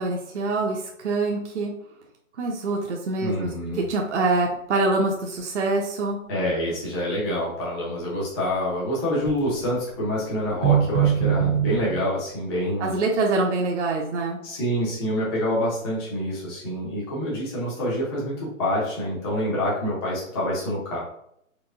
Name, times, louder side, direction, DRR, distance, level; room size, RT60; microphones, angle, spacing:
voice 1, 0.0-1.7 2.4-6.2 12.8-14.4, right 3 dB, 55° right, 0 dB, 0.7 m, -25 dB
voice 2, 3.2-3.8 6.3-13.0 14.4-21.0, equal, 20° left, -6 dB, 0.9 m, -27 dB
sound 1, 3.9-4.0 4.3-4.4 9.2-9.7 10.5-12.1, right 9 dB, 85° right, 1.2 m, -22 dB
4.5 x 2.3 x 2.6 m, 0.73 s
hypercardioid pair, 150°, 42 cm